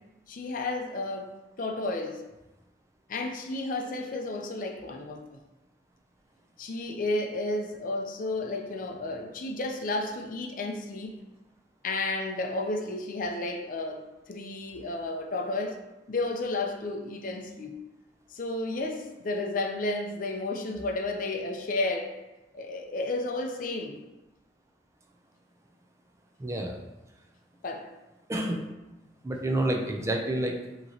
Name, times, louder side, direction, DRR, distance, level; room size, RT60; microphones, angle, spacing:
voice 1, 0.3-1.3 1.6-2.2 3.1-5.4 6.6-11.2 11.8-15.8 16.1-17.8 18.3-22.1 22.5-24.0 27.6-27.9, left 2 dB, 50° left, 3 dB, 0.5 m, -32 dB
voice 2, 26.4-26.8 28.3-28.7 29.2-30.6, right 1 dB, 15° right, 2 dB, 0.4 m, -29 dB
5.2 x 2.9 x 2.8 m, 1.0 s
head